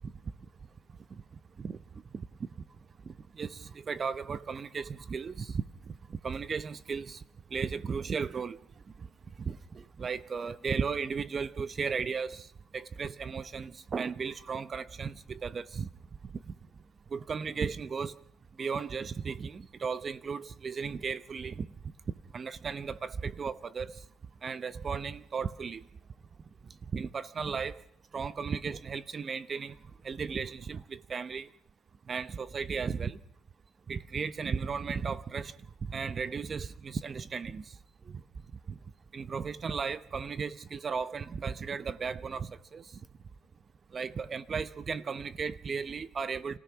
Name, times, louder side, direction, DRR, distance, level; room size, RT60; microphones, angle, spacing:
voice 1, 3.1-5.6 6.1-7.2 7.5-8.6 9.0-9.1 9.4-12.5 12.7-15.9 16.5-16.6 17.1-18.1 18.6-21.7 22.3-24.0 24.4-25.8 26.9-27.8 28.1-29.8 30.0-31.5 32.1-33.2 33.9-35.5 35.9-37.8 38.1-38.2 38.7-38.8 39.1-42.9 43.9-46.6, right 5 dB, 40° right, 0.8 m, -35 dB
28.5 x 15.0 x 6.0 m
cardioid pair, 85°, 0 cm